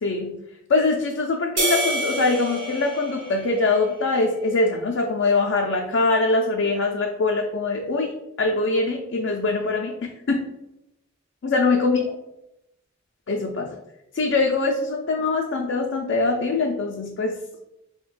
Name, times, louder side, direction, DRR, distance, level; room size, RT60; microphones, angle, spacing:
voice 1, 0.0-0.4 0.7-8.1 8.4-10.4 11.4-12.0 13.3-13.7 14.1-17.4, left 3 dB, 70° left, 1 dB, 0.4 m, -23 dB
sound 1, 1.6-4.2, right 1 dB, 65° right, 0.9 m, -28 dB
5.8 x 2.2 x 2.4 m, 0.87 s
head